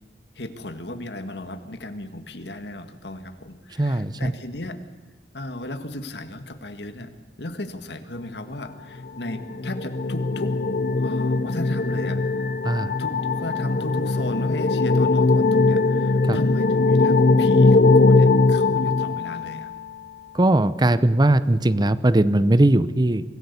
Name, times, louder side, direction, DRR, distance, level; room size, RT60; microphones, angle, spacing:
voice 1, 0.4-4.8 5.3-7.1 7.4-10.6 11.0-12.2 13.0-19.7, left 1 dB, 65° left, 9 dB, 1.9 m, -35 dB
voice 2, 3.8-4.3 12.6-12.9 16.2-16.4 20.3-23.2, right 1 dB, 25° right, 15 dB, 0.7 m, -19 dB
sound 1, 9.0-19.8, left 3 dB, 50° left, 0.8 m, -20 dB
24.5 x 16.0 x 8.4 m, 1.4 s
head